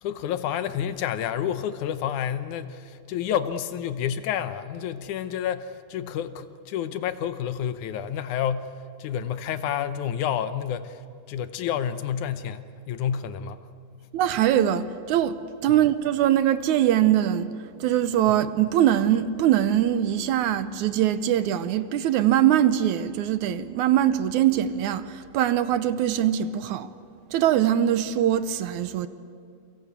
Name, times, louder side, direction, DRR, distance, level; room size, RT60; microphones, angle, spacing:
voice 1, 0.0-8.7 9.0-11.0 11.3-13.7, left 9 dB, 75° left, 2.3 m, -29 dB
voice 2, 14.1-17.6 17.8-26.9 27.3-29.1, right 11 dB, 75° right, 2.1 m, -22 dB
29.0 x 23.5 x 8.3 m
omnidirectional pair, 3.6 m